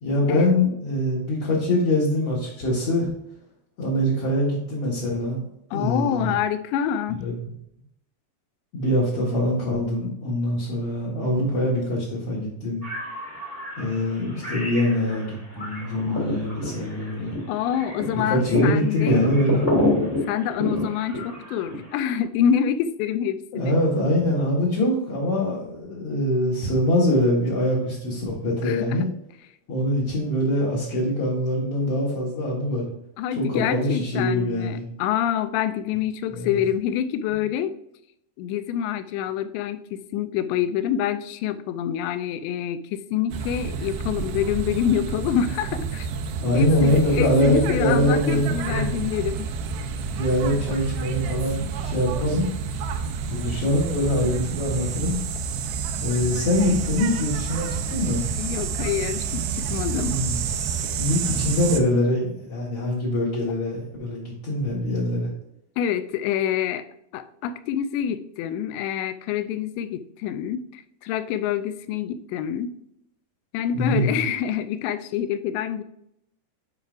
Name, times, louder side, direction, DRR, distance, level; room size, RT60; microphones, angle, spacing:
voice 1, 0.0-3.1 3.8-5.4 5.7-6.3 7.2-7.5 8.7-12.8 13.8-17.4 18.1-19.6 23.5-29.1 29.7-32.9 33.3-34.8 36.3-36.6 37.3-37.4 46.4-48.8 50.1-52.5 53.3-55.2 56.0-58.2 60.0-60.4 61.0-65.3 73.7-74.3, left 1 dB, 65° left, -7 dB, 1.5 m, -23 dB
voice 2, 5.7-7.3 17.5-19.3 20.3-23.8 28.6-29.1 33.2-37.8 38.4-46.1 46.5-49.5 58.4-60.2 65.8-66.8 67.1-72.7 73.5-75.8, left 9 dB, 85° left, 11 dB, 2.7 m, -26 dB
sound 1, 12.8-22.2, left 1 dB, 30° left, 0.6 m, -28 dB
sound 2, 43.3-61.8, right 6 dB, 80° right, 2.2 m, -29 dB
9.7 x 4.8 x 2.5 m, 0.77 s
omnidirectional pair, 5.0 m